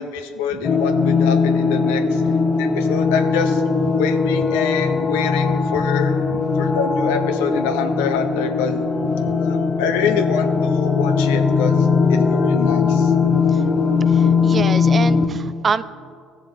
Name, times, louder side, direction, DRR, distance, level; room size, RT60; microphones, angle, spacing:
voice 1, 0.0-2.2 2.6-3.6 4.0-6.1 6.6-8.8 9.4-13.1, left 7 dB, 80° left, 6 dB, 0.8 m, -25 dB
sound 1, 0.6-15.3, left 5 dB, 40° left, 0.8 m, -19 dB
voice 2, 13.2-13.6 14.1-15.8, right 5 dB, 40° right, 16 dB, 0.4 m, -27 dB
16.5 x 6.8 x 3.1 m, 2.2 s
hypercardioid pair, 60°, 0 cm